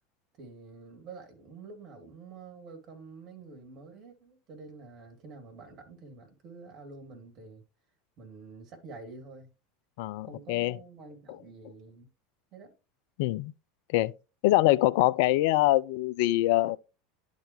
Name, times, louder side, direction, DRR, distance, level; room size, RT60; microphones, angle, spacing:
voice 1, 0.4-7.6 8.2-9.5 10.3-12.1 12.5-12.7, right 4 dB, 40° right, 2.5 m, -48 dB
voice 2, 10.0-10.8 13.2-13.5 13.9-14.1 14.4-16.8, left 17 dB, 55° left, 0.3 m, -24 dB
11.5 x 4.1 x 3.0 m
figure-of-eight pair, 80°, 0 cm